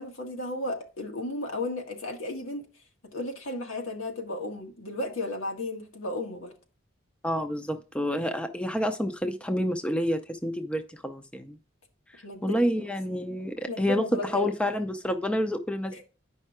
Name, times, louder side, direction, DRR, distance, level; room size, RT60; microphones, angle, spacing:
voice 1, 0.0-2.6 3.1-6.5 12.2-12.9 13.7-14.5 15.9-16.0, left 2 dB, 90° left, 1.8 m, -34 dB
voice 2, 7.2-11.6 12.4-14.0 14.3-16.0, equal, 5° left, 0.5 m, -29 dB
9.7 x 5.5 x 3.6 m
head